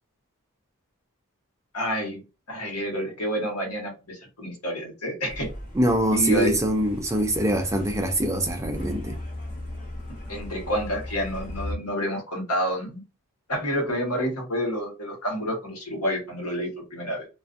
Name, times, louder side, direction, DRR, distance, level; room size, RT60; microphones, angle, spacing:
voice 1, 1.7-2.2 2.5-5.5 6.1-6.6 10.3-13.0 13.5-17.3, equal, 85° left, 1.2 m, -29 dB
Truck, 5.3-11.8, left 1 dB, 35° left, 0.9 m, -37 dB
voice 2, 5.8-9.1, right 1 dB, 15° right, 0.3 m, -24 dB
2.4 x 2.3 x 2.5 m
head